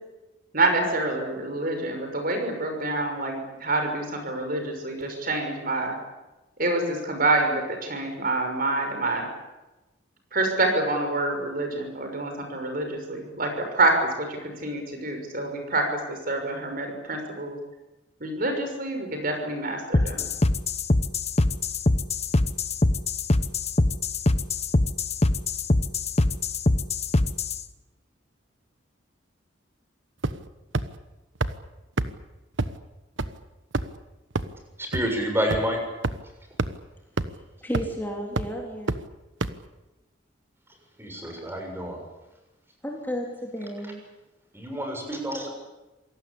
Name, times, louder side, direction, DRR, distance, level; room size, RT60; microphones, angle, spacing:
voice 1, 0.5-6.0 6.6-9.3 10.3-13.9 14.2-17.6 18.2-20.3, right 2 dB, 50° right, 4 dB, 6.2 m, -27 dB
sound 1, 19.9-27.6, left 2 dB, 35° left, 1.1 m, -23 dB
sound 2, 30.2-30.5 30.7-30.8 31.4-31.5 32.0-32.1 32.6-32.7 33.2-33.3 33.7-34.0 34.3-34.4 34.9-35.0 35.5-35.6 36.0-36.1 36.6-36.7 37.2-37.3 37.7-38.0 38.4-38.5 38.9-39.0 39.4-39.5, right 2 dB, 80° right, 1.2 m, -25 dB
voice 2, 34.9-35.8 41.0-42.0 44.5-45.5, equal, 10° right, 2 dB, 7.0 m, -28 dB
voice 3, 37.6-39.0 42.8-44.0, equal, 10° left, 0 dB, 3.5 m, -32 dB
27.0 x 18.5 x 8.7 m, 1.0 s
head